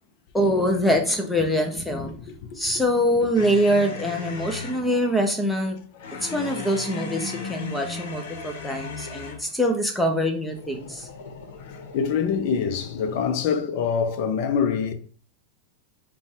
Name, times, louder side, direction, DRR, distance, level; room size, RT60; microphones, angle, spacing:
voice 1, 0.3-2.1 2.5-5.8 6.2-11.1, equal, 5° left, 0.5 m, -24 dB
sound 1, 3.3-4.9 6.0-9.5 10.4-13.4, left 4 dB, 80° left, 0.9 m, -37 dB
voice 2, 11.9-14.9, left 6 dB, 50° left, 0.6 m, -24 dB
5.1 x 2.3 x 3.4 m
supercardioid pair, 155°, 0 cm